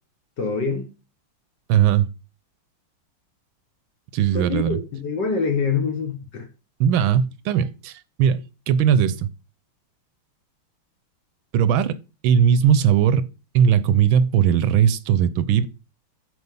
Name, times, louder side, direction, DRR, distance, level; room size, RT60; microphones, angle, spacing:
voice 1, 0.4-0.9 4.3-6.5, left 5 dB, 55° left, 1.9 m, -25 dB
voice 2, 1.7-2.1 4.1-4.8 6.8-9.3 11.5-12.0 12.2-13.3 13.5-15.7, right 8 dB, 80° right, 1.4 m, -19 dB
8.0 x 5.4 x 5.4 m
omnidirectional pair, 2.3 m